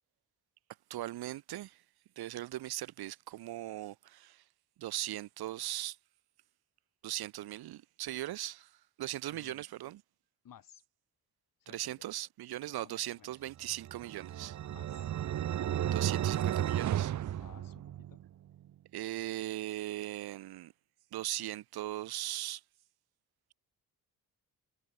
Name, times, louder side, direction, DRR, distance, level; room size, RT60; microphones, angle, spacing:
voice 1, 0.9-1.8 2.2-4.4 4.8-6.0 7.0-8.7 9.0-10.0 11.7-14.6 15.9-17.1 18.9-20.7 21.1-22.6, right 15 dB, 85° right, 1.0 m, -39 dB
voice 2, 9.3-9.7 10.4-10.8 11.6-12.0 12.7-13.3 14.7-15.1 17.3-18.2, left 9 dB, 60° left, 4.0 m, -57 dB
sound 1, 13.7-18.3, right 11 dB, 50° right, 0.7 m, -33 dB
cardioid pair, 120°, 37 cm